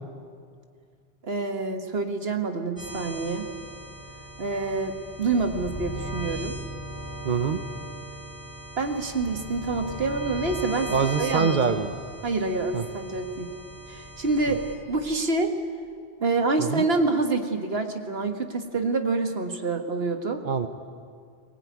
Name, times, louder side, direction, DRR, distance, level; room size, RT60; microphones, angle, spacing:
voice 1, 1.2-3.5 4.4-6.6 8.8-10.9 11.2-11.8 12.2-13.5 13.9-14.6 14.9-15.5 16.2-20.4, right 3 dB, 65° right, 6 dB, 1.9 m, -27 dB
sound 1, 2.8-14.8, right 1 dB, 20° right, 4.0 m, -38 dB
voice 2, 7.2-7.6 10.9-11.9 12.7-12.8 14.5-14.6 16.6-16.9 20.4-20.7, right 6 dB, 50° right, 9 dB, 0.9 m, -24 dB
22.0 x 18.0 x 9.5 m, 2.2 s
omnidirectional pair, 1.1 m